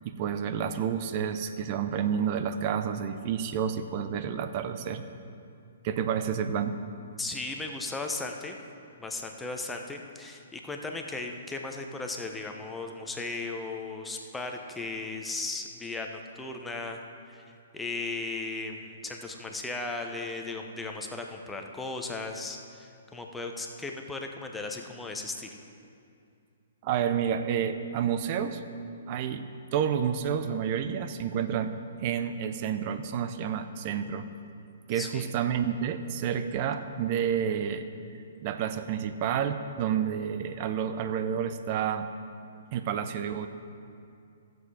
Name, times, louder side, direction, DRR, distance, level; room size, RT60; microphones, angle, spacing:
voice 1, 0.0-5.1 5.8-6.8 26.8-28.6 29.1-29.5 29.7-34.3 34.9-37.9 38.4-42.1 42.7-43.5, right 8 dB, 40° right, 10 dB, 0.7 m, -29 dB
voice 2, 7.2-8.6 9.0-17.0 17.3-17.4 17.7-25.5 34.9-35.3, left 3 dB, 5° left, 2 dB, 1.0 m, -36 dB
14.0 x 7.9 x 5.0 m, 2.4 s
figure-of-eight pair, 120°, 0 cm